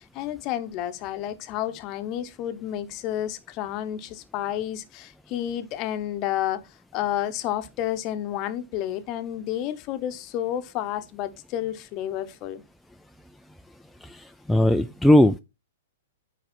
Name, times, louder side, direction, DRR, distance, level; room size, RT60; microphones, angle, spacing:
voice 1, 0.0-6.6 6.9-12.6, left 12 dB, 30° left, 0.8 m, -30 dB
voice 2, 14.0-15.4, left 1 dB, ahead, 0.3 m, -19 dB
8.7 x 4.9 x 4.3 m
hypercardioid pair, 150°, 0 cm